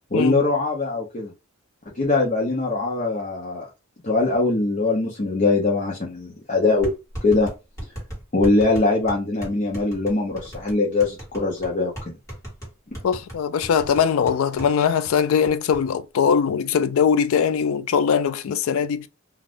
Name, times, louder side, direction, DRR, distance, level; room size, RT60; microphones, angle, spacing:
voice 1, 0.1-1.3 1.9-3.7 4.0-6.9 7.2-7.5 8.3-12.2, left 3 dB, 35° left, 0.6 m, -22 dB
sound 1, 6.8-14.7 15.0-15.1 15.5-15.8, right 1 dB, 15° left, 1.5 m, -36 dB
voice 2, 13.0-19.1, left 7 dB, 75° left, 0.3 m, -21 dB
2.5 x 2.4 x 3.4 m
head